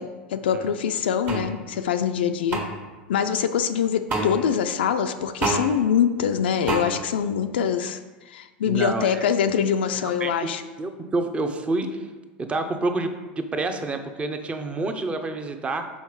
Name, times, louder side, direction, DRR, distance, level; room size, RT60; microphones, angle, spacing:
voice 1, 0.0-2.7 3.1-8.0 8.3-10.6, left 8 dB, 85° left, 7 dB, 0.4 m, -24 dB
sound 1, 1.3-1.4 2.5-2.6 4.1-4.3 5.4-5.6 6.7-6.8, right 3 dB, 35° right, 1.5 m, -25 dB
voice 2, 8.6-9.3 10.0-10.5 10.8-12.1 12.4-15.9, right 2 dB, 20° right, 7 dB, 0.7 m, -28 dB
5.6 x 4.6 x 4.6 m, 1.2 s
hypercardioid pair, 105°, 5 cm